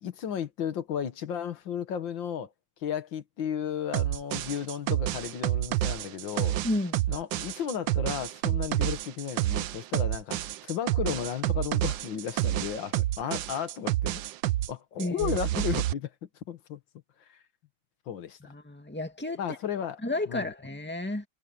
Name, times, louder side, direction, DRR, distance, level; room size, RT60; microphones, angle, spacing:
voice 1, 0.0-2.5 2.8-6.6 7.1-14.2 14.7-16.1 16.5-16.8 17.3-17.4 18.1-18.4 19.4-20.0 20.3-20.5, left 8 dB, 85° left, 2.1 m, -34 dB
sound 1, 3.9-14.7 15.0-15.9, right 14 dB, 85° right, 1.3 m, -29 dB
voice 2, 6.6-7.0 15.0-15.4 18.4-19.4 20.0-21.3, left 1 dB, 5° left, 2.1 m, -32 dB
omnidirectional pair, 2.0 m